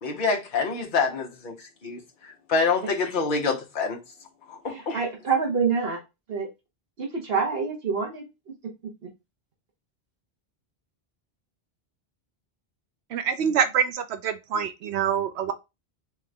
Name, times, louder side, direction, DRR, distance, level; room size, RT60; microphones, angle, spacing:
voice 1, 0.0-4.0 4.5-5.0, left 4 dB, 50° left, 1.1 m, -27 dB
voice 2, 4.7-6.0 6.3-6.5 7.0-8.3, right 5 dB, 65° right, 1.2 m, -26 dB
voice 3, 13.1-15.5, right 7 dB, 80° right, 0.8 m, -25 dB
3.7 x 3.5 x 3.3 m
omnidirectional pair, 1.1 m